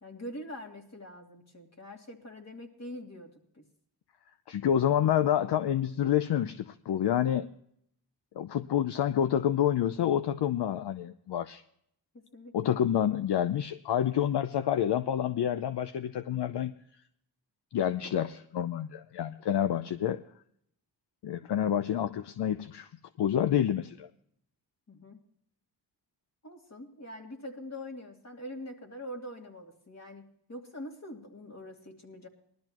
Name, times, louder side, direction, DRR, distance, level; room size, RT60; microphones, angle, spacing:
voice 1, 0.0-3.6 12.1-12.7 24.9-25.2 26.4-32.3, left 1 dB, 35° left, 2 dB, 2.8 m, -44 dB
voice 2, 4.5-7.5 8.4-11.6 12.5-16.7 17.7-20.2 21.2-22.9 23.2-24.1, left 10 dB, 65° left, 11 dB, 0.7 m, -28 dB
20.0 x 12.5 x 3.0 m, 0.70 s
cardioid pair, 70°, 44 cm